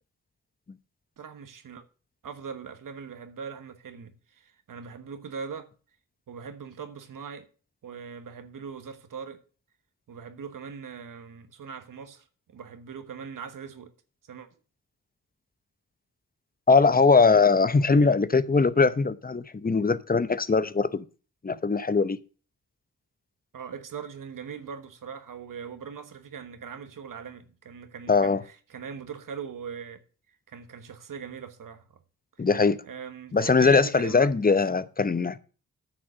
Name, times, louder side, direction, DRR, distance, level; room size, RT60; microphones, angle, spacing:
voice 1, 1.2-1.8 2.2-5.7 6.3-7.5 7.8-9.4 10.1-13.9 14.3-14.5 23.5-30.0 30.3-32.0 32.4-32.5 32.8-34.6, right 6 dB, 70° right, 1.4 m, -41 dB
voice 2, 16.7-21.0 21.4-22.2 28.1-28.4 32.4-32.8 33.3-35.4, left 4 dB, 25° left, 0.8 m, -21 dB
9.9 x 6.2 x 6.1 m
cardioid pair, 45°, 34 cm